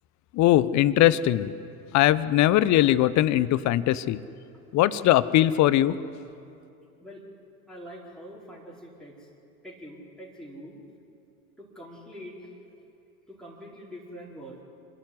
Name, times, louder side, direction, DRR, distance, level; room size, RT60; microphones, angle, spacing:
voice 1, 0.3-1.5 1.9-4.2 4.7-6.0, left 14 dB, 40° left, 17 dB, 0.8 m, -20 dB
voice 2, 7.7-9.3 9.6-10.8 11.6-12.5 13.3-14.6, equal, ahead, -5 dB, 4.7 m, -44 dB
26.0 x 13.0 x 9.8 m, 2.6 s
hypercardioid pair, 80°, 44 cm